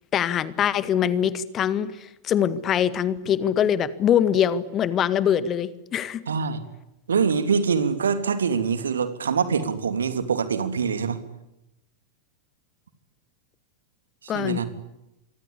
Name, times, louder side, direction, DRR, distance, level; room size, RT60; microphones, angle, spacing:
voice 1, 0.1-6.2 14.3-14.6, left 9 dB, 30° left, 16 dB, 1.8 m, -23 dB
voice 2, 6.3-6.6 7.1-11.2 14.2-14.7, right 6 dB, 70° right, 11 dB, 2.9 m, -24 dB
27.0 x 24.5 x 8.6 m, 0.90 s
figure-of-eight pair, 90°, 0 cm